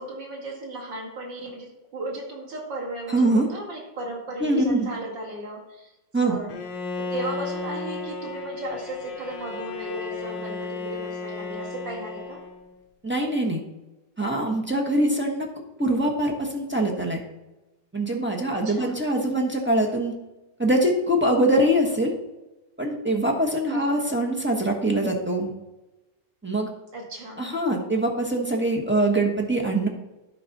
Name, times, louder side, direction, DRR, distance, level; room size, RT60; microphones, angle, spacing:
voice 1, 0.0-5.9 6.2-6.6 7.0-12.4 18.5-19.0 23.7-24.0 26.9-27.5, right 1 dB, 80° right, -1 dB, 2.8 m, -35 dB
voice 2, 3.1-3.4 4.4-4.9 6.1-6.4 13.0-13.6 14.2-15.5 15.8-17.2 17.9-20.1 20.6-22.1 22.8-25.5 26.4-26.7 27.4-29.9, right 1 dB, 10° right, -1 dB, 0.8 m, -23 dB
Bowed string instrument, 6.5-12.8, left 4 dB, 80° left, 1.5 m, -34 dB
12.5 x 4.8 x 4.1 m, 1.0 s
omnidirectional pair, 2.0 m